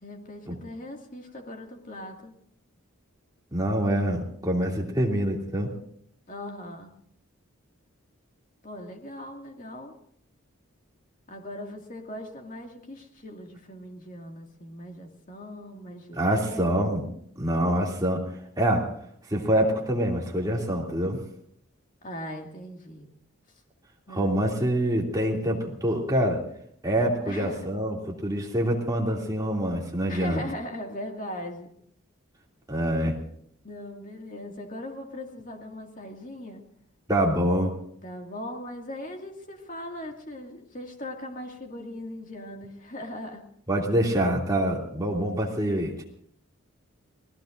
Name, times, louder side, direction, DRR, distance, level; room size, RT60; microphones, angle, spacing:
voice 1, 0.0-2.3 6.3-6.9 8.6-9.9 11.3-16.7 17.0-17.1 22.0-23.1 24.1-24.4 27.2-27.7 30.1-31.7 33.6-36.6 38.0-43.4, left 1 dB, 35° left, 2 dB, 2.3 m, -39 dB
voice 2, 3.5-5.7 16.2-17.0 17.4-18.2 18.6-18.9 19.3-21.2 24.1-26.4 26.8-30.4 32.7-33.1 37.1-37.8 43.7-46.0, right 1 dB, 15° right, -2 dB, 2.7 m, -25 dB
29.5 x 18.5 x 2.6 m, 0.68 s
head